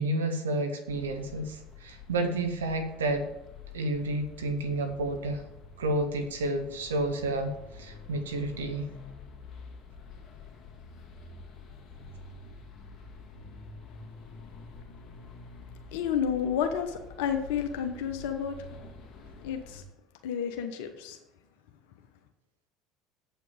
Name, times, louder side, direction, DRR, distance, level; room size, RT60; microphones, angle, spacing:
voice 1, 0.0-3.3 3.7-5.4 5.8-8.8, right 2 dB, 85° right, 8 dB, 1.2 m, -30 dB
sound 1, 0.9-19.8, left 4 dB, 45° left, 1.9 m, -48 dB
voice 2, 15.9-18.6 19.4-19.8 20.2-21.2, left 8 dB, 70° left, 5 dB, 1.0 m, -30 dB
8.1 x 5.7 x 7.2 m, 0.94 s
hypercardioid pair, 75°, 0 cm